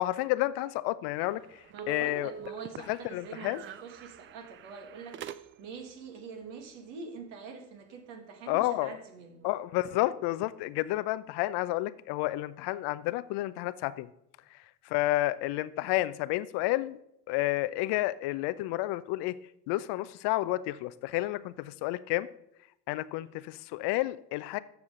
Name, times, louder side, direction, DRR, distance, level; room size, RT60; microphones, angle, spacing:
voice 1, 0.0-2.3 2.9-3.6 8.5-8.9 9.4-14.1 14.5-17.0 17.3-19.4 19.7-22.3 22.9-24.6, left 17 dB, 55° left, 15 dB, 0.7 m, -30 dB
sound 1, 1.1-5.8, right 8 dB, 25° right, 0.4 m, -45 dB
voice 2, 1.7-9.5, right 5 dB, 60° right, 4 dB, 2.2 m, -45 dB
13.0 x 7.1 x 3.8 m, 0.78 s
hypercardioid pair, 65°, 50 cm